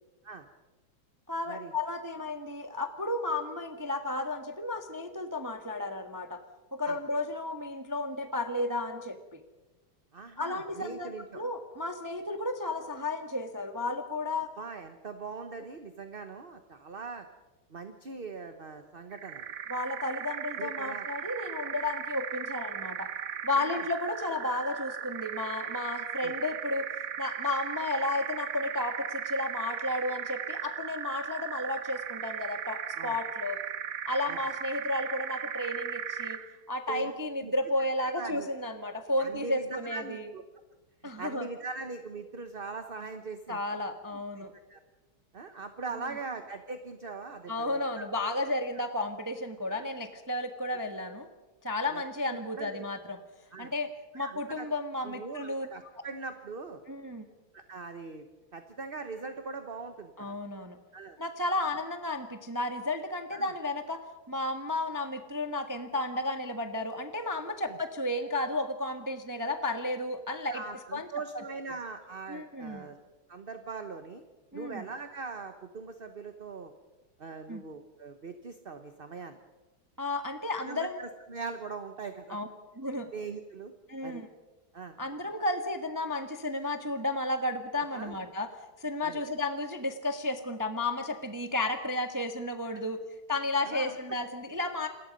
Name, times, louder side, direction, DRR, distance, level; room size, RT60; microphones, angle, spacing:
voice 1, 1.3-6.4 6.7-9.4 10.4-14.5 19.7-23.1 23.4-26.9 27.2-33.6 34.1-36.4 36.7-40.3 41.0-41.5 43.5-44.5 47.5-51.3 51.6-53.2 53.6-55.7 56.9-57.2 60.2-60.8 61.2-64.0 64.3-70.6 70.9-71.1 72.3-72.9 74.5-74.8 77.5-77.6 80.0-81.0 82.3-82.5 82.8-83.1 83.9-84.3 85.0-88.5 88.8-93.0 93.3-94.9, left 2 dB, 10° right, 6 dB, 1.1 m, -33 dB
voice 2, 10.1-11.4 14.6-17.3 17.7-19.4 20.6-21.1 23.5-23.9 26.2-26.3 33.0-33.2 34.3-34.4 36.9-37.1 37.4-37.5 38.0-38.5 39.2-40.4 41.2-43.6 44.3-44.8 45.3-48.1 49.7-49.9 51.9-52.8 53.5-53.7 54.1-54.7 55.0-56.8 57.5-58.2 58.5-60.4 60.9-61.2 63.3-63.5 67.7-67.8 70.5-73.0 73.3-74.2 74.5-76.7 77.2-79.4 80.5-82.4 83.1-83.7 84.0-84.2 84.7-85.0 87.9-88.2 89.0-89.2 93.6-94.0, right 4 dB, 35° right, 7 dB, 1.1 m, -41 dB
sound 1, 19.1-36.5, right 8 dB, 55° right, 1.1 m, -37 dB
28.5 x 21.5 x 5.4 m, 1.1 s
omnidirectional pair, 2.3 m